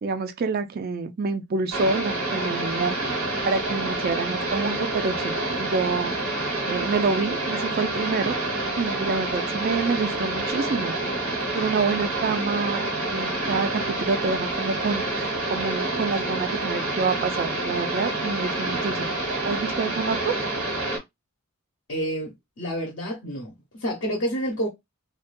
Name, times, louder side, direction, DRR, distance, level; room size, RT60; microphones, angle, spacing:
voice 1, 0.0-3.0 3.5-6.1 6.7-8.4 8.7-11.2 11.5-19.2 19.4-20.3, right 4 dB, 45° right, 0.3 m, -27 dB
sound 1, 1.7-21.0, right 2 dB, 85° right, 1.2 m, -28 dB
voice 2, 21.9-24.7, equal, 55° left, 0.9 m, -29 dB
2.6 x 2.3 x 2.5 m
head